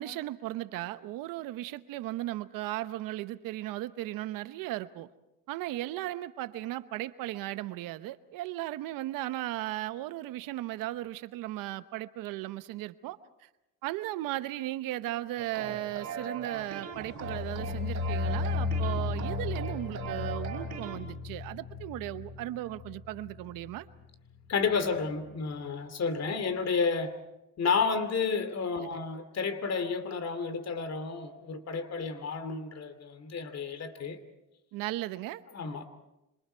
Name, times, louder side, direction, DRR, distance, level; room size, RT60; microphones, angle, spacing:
voice 1, 0.0-5.1 5.5-13.5 13.8-23.9 28.8-29.0 34.7-35.4, right 16 dB, 90° right, 1.0 m, -36 dB
sound 1, 15.4-21.0, right 6 dB, 50° right, 5.1 m, -40 dB
sound 2, 16.9-24.1 24.3-24.8 25.1-25.2, left 4 dB, 90° left, 4.0 m, -35 dB
voice 2, 24.5-27.1 27.6-34.2 35.5-35.8, left 5 dB, 50° left, 2.7 m, -31 dB
27.5 x 26.5 x 4.5 m
cardioid pair, 90°, 33 cm